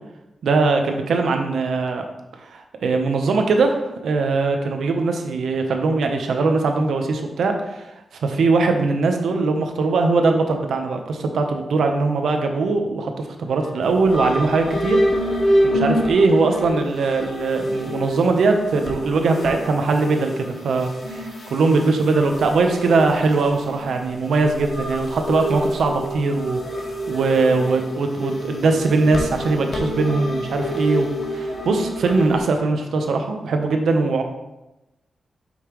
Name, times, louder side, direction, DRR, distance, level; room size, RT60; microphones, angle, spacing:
voice 1, 0.4-2.1 2.4-7.9 8.1-15.0 15.6-26.6 27.1-34.2, right 3 dB, 85° right, 4 dB, 0.9 m, -21 dB
sound 1, 13.8-32.4, equal, 40° left, 1.2 m, -27 dB
8.3 x 5.6 x 3.1 m, 0.96 s
wide cardioid pair, 170°, 0 cm